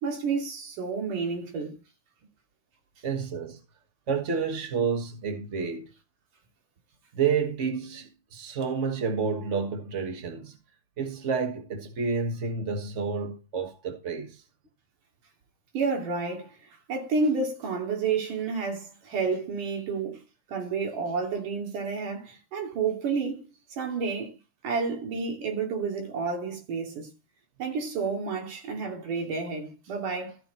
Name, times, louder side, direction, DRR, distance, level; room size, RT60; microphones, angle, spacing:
voice 1, 0.0-1.8 15.7-16.6 16.9-20.2 20.5-23.4 23.7-24.4 24.6-27.1 27.6-30.4, right 4 dB, 85° right, 4.3 m, -30 dB
voice 2, 3.0-3.6 4.1-5.9 7.1-10.6 11.0-14.4, right 5 dB, 70° right, 0.7 m, -29 dB
14.5 x 6.2 x 4.3 m
omnidirectional pair, 3.6 m